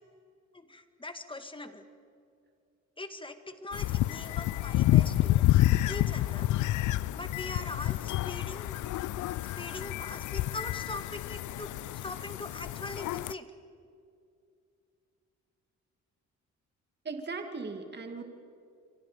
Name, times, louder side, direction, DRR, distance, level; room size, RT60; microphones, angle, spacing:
voice 1, 0.5-1.8 3.0-5.5 5.9-6.5 7.1-8.7 9.6-11.7 12.0-13.5, left 2 dB, 15° left, 8 dB, 2.0 m, -42 dB
sound 1, 3.7-13.3, left 15 dB, 75° left, 0.6 m, -29 dB
voice 2, 17.0-18.2, right 4 dB, 35° right, 5 dB, 2.6 m, -38 dB
29.0 x 25.5 x 5.2 m, 2.4 s
cardioid pair, 90°, 30 cm